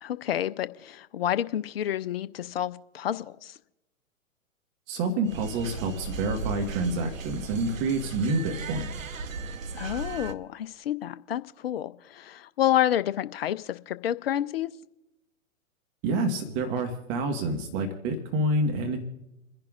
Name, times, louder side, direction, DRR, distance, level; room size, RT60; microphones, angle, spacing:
voice 1, 0.0-3.5 9.8-14.7, left 11 dB, 45° left, 14 dB, 0.6 m, -29 dB
voice 2, 4.9-8.9 16.0-19.0, right 2 dB, 30° right, 4 dB, 1.6 m, -28 dB
sound 1, 5.3-10.3, right 4 dB, 70° right, 1.0 m, -37 dB
29.5 x 10.5 x 2.5 m, 0.94 s
figure-of-eight pair, 115°, 41 cm